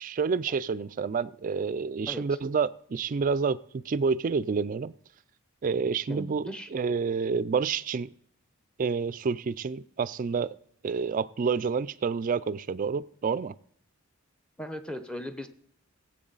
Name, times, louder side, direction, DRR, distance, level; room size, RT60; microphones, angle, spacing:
voice 1, 0.0-4.9 5.6-8.1 8.8-10.5 10.8-13.5, right 5 dB, 40° right, 18 dB, 0.3 m, -29 dB
voice 2, 2.1-2.4 6.1-6.7 14.6-15.5, equal, 5° left, 8 dB, 0.7 m, -38 dB
17.5 x 7.9 x 3.9 m, 0.69 s
head